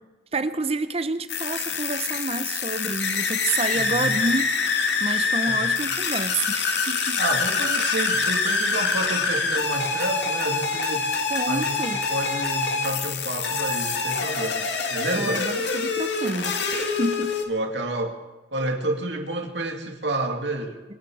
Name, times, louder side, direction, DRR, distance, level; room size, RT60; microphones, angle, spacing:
voice 1, 0.3-4.4 4.7-7.2 11.3-12.0 15.1-17.4, right 3 dB, 35° right, 0.9 m, -29 dB
sound 1, 1.3-17.4, left 4 dB, 80° left, 2.2 m, -25 dB
voice 2, 3.7-4.2 5.4-5.8 7.2-11.1 11.5-15.4 17.5-18.2 18.5-20.7, right 2 dB, 80° right, 2.5 m, -30 dB
25.0 x 8.4 x 6.3 m
head